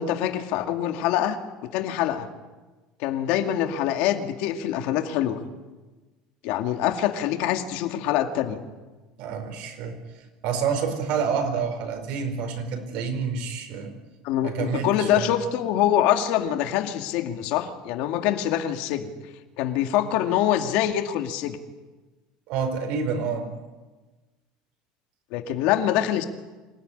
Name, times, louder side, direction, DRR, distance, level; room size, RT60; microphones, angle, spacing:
voice 1, 0.0-1.4 1.7-2.3 3.0-5.4 6.4-8.6 14.2-19.1 19.6-21.6 25.3-26.2, left 11 dB, 60° left, 6 dB, 2.2 m, -24 dB
voice 2, 9.2-10.0 10.4-13.9 14.4-15.3 22.5-23.5, right 6 dB, 55° right, 6 dB, 4.9 m, -28 dB
26.0 x 18.0 x 9.9 m, 1.2 s
cardioid pair, 170°, 2 cm